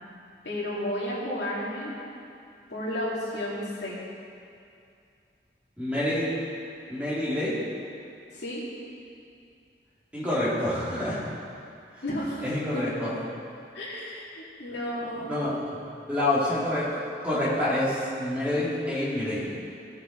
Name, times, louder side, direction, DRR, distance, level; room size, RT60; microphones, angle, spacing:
voice 1, 0.4-1.9 2.7-4.0 8.3-8.6 12.0-12.9 13.7-15.3, left 1 dB, 85° left, -6 dB, 2.3 m, -32 dB
voice 2, 5.8-6.3 6.9-7.6 10.1-11.2 12.4-13.2 14.7-14.8 15.2-15.5 16.1-19.5, left 1 dB, 10° right, -10 dB, 2.3 m, -27 dB
16.0 x 5.4 x 3.8 m, 2.5 s
head